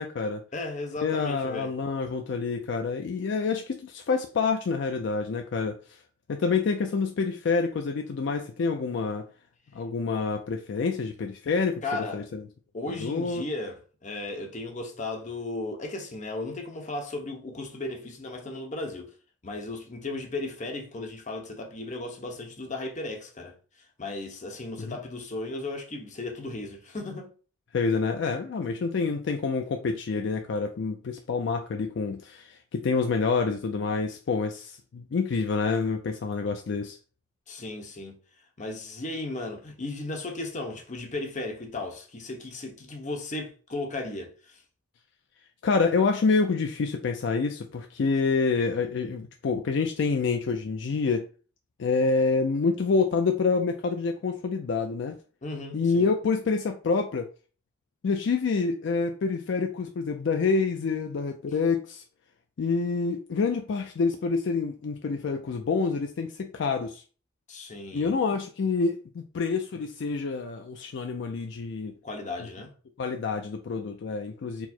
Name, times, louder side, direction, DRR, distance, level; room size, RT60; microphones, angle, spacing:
voice 1, 0.0-0.4 1.0-6.0 6.3-9.2 9.7-12.4 12.9-13.4 24.8-25.0 27.7-37.0 45.6-51.3 51.8-55.1 55.7-57.3 58.0-62.0 62.6-67.0 67.9-71.9 72.4-72.5 73.0-74.7, left 4 dB, 70° left, 0.4 m, -27 dB
voice 2, 0.5-1.7 11.8-12.2 12.7-19.1 19.4-23.5 24.0-27.3 37.5-38.1 38.6-44.6 55.4-56.1 67.5-68.1 72.0-72.7, left 2 dB, 40° left, 0.9 m, -35 dB
4.6 x 2.0 x 4.2 m
head